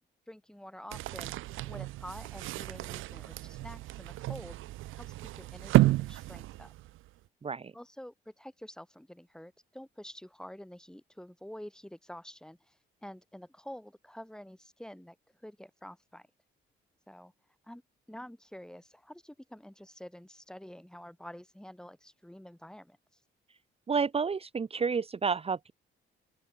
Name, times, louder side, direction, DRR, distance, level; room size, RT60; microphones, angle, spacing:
voice 1, 0.3-1.3 1.6-4.6 5.0-6.7 7.7-16.3 17.1-17.3 17.6-17.8 18.1-23.0, equal, 5° left, 3.2 m, -48 dB
sound 1, 0.9-7.1, right 17 dB, 90° right, 0.8 m, -31 dB
voice 2, 7.4-7.7 23.9-25.7, right 5 dB, 30° right, 1.0 m, -30 dB
open air
cardioid pair, 90°, 20 cm